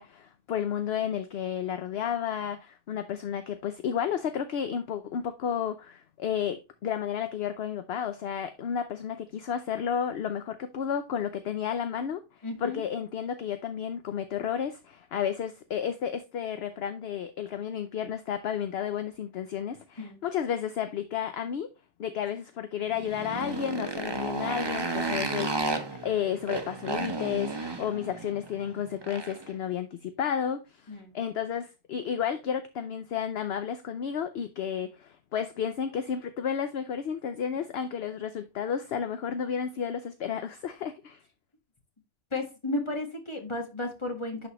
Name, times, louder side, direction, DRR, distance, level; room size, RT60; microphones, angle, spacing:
voice 1, 0.0-12.2 12.6-21.7 22.0-41.2, left 8 dB, 60° left, 0.8 m, -32 dB
voice 2, 12.4-12.8 20.0-20.2 30.9-31.1 42.3-44.5, left 2 dB, 25° left, 1.7 m, -33 dB
Motorcycle, 22.9-29.5, right 3 dB, 25° right, 0.8 m, -33 dB
10.5 x 4.2 x 3.0 m
omnidirectional pair, 1.3 m